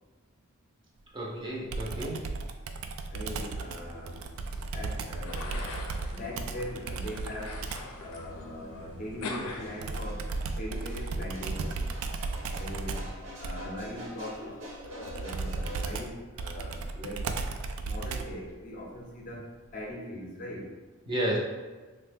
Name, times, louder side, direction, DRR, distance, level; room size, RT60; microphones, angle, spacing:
voice 1, 1.1-2.2 21.1-21.4, right 1 dB, 25° right, -4 dB, 0.5 m, -31 dB
Computer keyboard, 1.7-8.0 9.8-18.5, right 3 dB, 85° right, 0.3 m, -35 dB
voice 2, 3.1-4.3 4.5-7.7 8.0-11.9 12.6-20.7, left 1 dB, 40° left, -2 dB, 0.5 m, -41 dB
sound 1, 3.7-10.4, left 2 dB, 90° left, 0.4 m, -43 dB
sound 2, 6.1-15.9, equal, 60° right, 0.8 m, -49 dB
3.2 x 2.1 x 3.4 m, 1.4 s
head